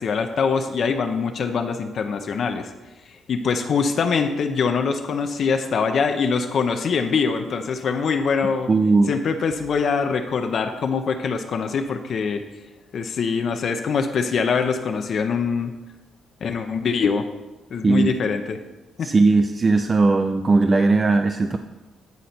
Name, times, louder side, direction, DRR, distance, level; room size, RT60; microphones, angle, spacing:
voice 1, 0.0-2.7 3.3-8.7 9.1-12.4 12.9-15.7 16.4-17.2 17.7-18.6 19.0-19.1, left 5 dB, 55° left, 6 dB, 0.6 m, -23 dB
voice 2, 8.7-9.1 17.8-18.1 19.0-21.6, right 3 dB, 30° right, 7 dB, 0.3 m, -18 dB
9.3 x 4.0 x 4.3 m, 1.1 s
cardioid pair, 90°, 0 cm